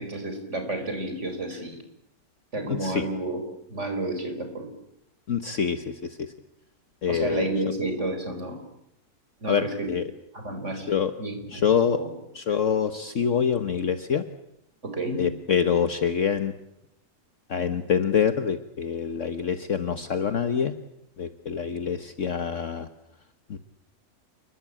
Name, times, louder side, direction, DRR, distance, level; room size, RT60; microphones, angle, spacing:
voice 1, 0.0-1.8 2.5-3.4 3.7-4.7 7.1-8.6 9.4-9.9 10.3-10.9 11.2-11.7 11.9-12.1 14.8-15.3, right 2 dB, 50° right, 6 dB, 5.0 m, -31 dB
voice 2, 2.6-3.1 5.3-6.3 7.0-7.5 9.5-10.0 10.7-11.1 11.5-12.0 12.3-14.2 15.2-16.5 17.5-20.7 21.2-22.9 23.5-23.6, left 7 dB, 55° left, 9 dB, 1.5 m, -26 dB
29.5 x 21.0 x 8.8 m, 0.79 s
omnidirectional pair, 1.6 m